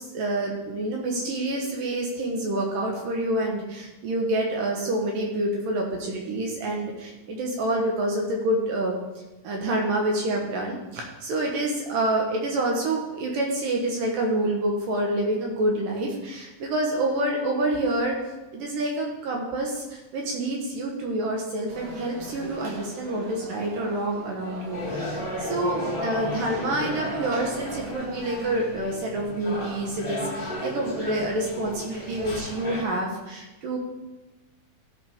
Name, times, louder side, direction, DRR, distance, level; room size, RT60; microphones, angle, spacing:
voice 1, 0.0-8.9 9.4-33.8, right 1 dB, 75° right, -1 dB, 2.8 m, -27 dB
Conversation / Crowd, 21.7-27.9, right 2 dB, 60° right, 2.7 m, -41 dB
sound 1, 24.7-32.8, left 1 dB, 15° left, 1.3 m, -34 dB
15.0 x 6.7 x 3.6 m, 1.1 s
omnidirectional pair, 4.0 m